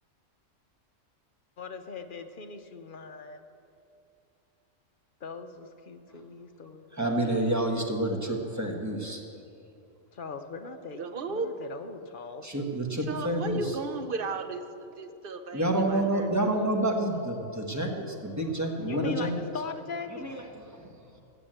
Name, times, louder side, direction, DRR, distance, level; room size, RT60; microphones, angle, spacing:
voice 1, 1.6-3.4 5.2-7.0 10.1-12.5 18.8-20.3, left 5 dB, 50° left, 8 dB, 0.7 m, -40 dB
voice 2, 6.9-9.2 10.6-10.8 12.4-13.8 15.5-19.6 20.0-20.9, right 1 dB, 15° right, 1 dB, 1.3 m, -29 dB
voice 3, 11.0-11.5 13.1-14.6 15.0-15.6 15.9-16.3, right 4 dB, 50° right, 8 dB, 0.9 m, -34 dB
15.0 x 7.1 x 7.9 m, 2.6 s
omnidirectional pair, 1.3 m